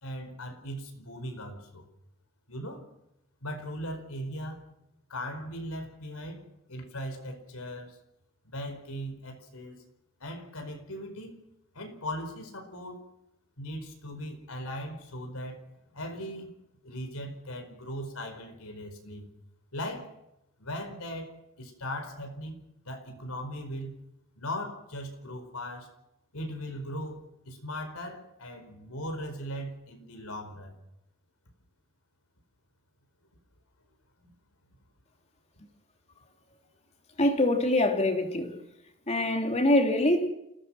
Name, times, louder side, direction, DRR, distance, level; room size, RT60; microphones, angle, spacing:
voice 1, 0.0-1.8 2.5-2.8 3.4-4.6 5.1-6.4 6.7-8.0 8.4-9.8 10.2-11.4 11.7-13.0 13.6-15.6 15.9-16.6 16.8-19.3 19.7-20.1 20.6-21.3 21.6-24.0 24.4-25.9 26.3-30.8 34.2-34.3, equal, 75° left, 4.8 m, -38 dB
voice 2, 37.2-38.6 39.1-40.3, left 1 dB, 30° left, 3.0 m, -24 dB
29.0 x 17.5 x 6.2 m
head